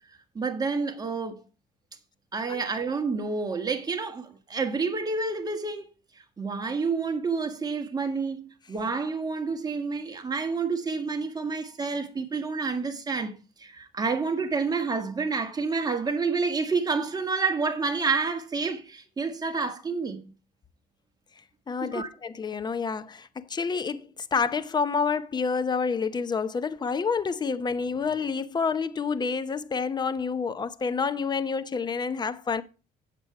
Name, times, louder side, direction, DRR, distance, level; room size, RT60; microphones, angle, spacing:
voice 1, 0.3-1.4 2.3-5.9 6.4-13.3 13.6-20.3 21.9-22.1, right 4 dB, 25° right, 1.6 m, -29 dB
voice 2, 21.7-24.0 24.3-32.6, left 5 dB, 25° left, 0.7 m, -28 dB
8.1 x 7.5 x 4.7 m
cardioid pair, 110°, 17 cm